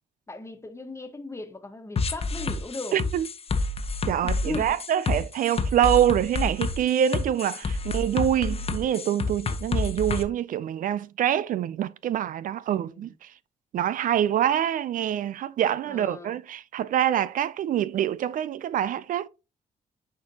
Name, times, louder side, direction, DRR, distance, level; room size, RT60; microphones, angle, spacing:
voice 1, 0.3-3.0 4.2-4.8 7.6-7.7 12.7-13.1 15.8-16.4, left 3 dB, 20° left, 1.3 m, -38 dB
sound 1, 2.0-10.2, left 3 dB, 45° left, 1.0 m, -28 dB
voice 2, 2.9-3.3 4.1-13.3 13.7-19.3, right 10 dB, 65° right, 0.4 m, -25 dB
10.0 x 4.4 x 2.8 m
cardioid pair, 95°, 15 cm